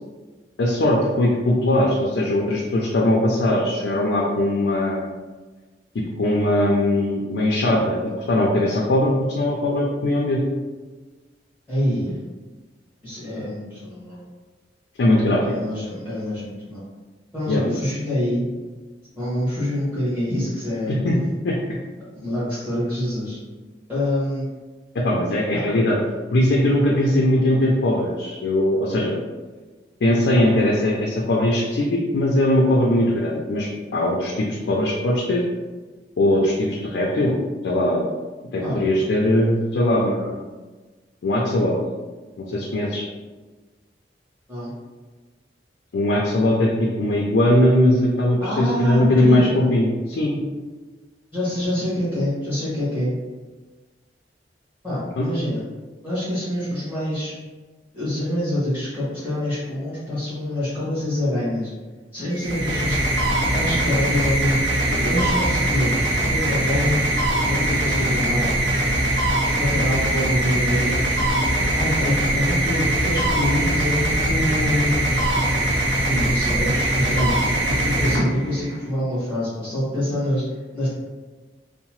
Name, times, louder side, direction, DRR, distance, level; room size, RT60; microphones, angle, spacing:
voice 1, 0.6-5.0 6.2-8.0 8.3-10.4 15.0-15.4 17.5-17.6 20.9-21.2 21.4-21.6 24.9-26.0 26.3-29.2 30.0-33.7 33.9-35.4 36.2-37.4 37.6-38.1 38.5-40.4 41.2-41.8 42.4-43.0 45.9-50.4 55.2-55.3, left 1 dB, 70° left, -2 dB, 0.4 m, -20 dB
voice 2, 11.7-12.2 13.0-14.2 15.4-16.8 17.3-18.5 19.1-21.0 22.1-23.4 23.9-24.5 25.5-25.6 27.1-27.2 38.6-38.7 44.5-44.7 48.4-49.6 51.3-53.1 54.8-55.6 56.0-57.3 57.9-61.7 62.1-63.0 63.5-64.6 65.0-65.9 66.3-67.0 67.5-68.6 69.6-71.2 71.7-75.0 76.0-77.3 77.7-80.4 80.7-80.9, left 1 dB, 10° right, -12 dB, 1.1 m, -25 dB
sound 1, 62.3-78.8, right 1 dB, 85° right, 0.6 m, -22 dB
2.8 x 2.0 x 3.0 m, 1.3 s
head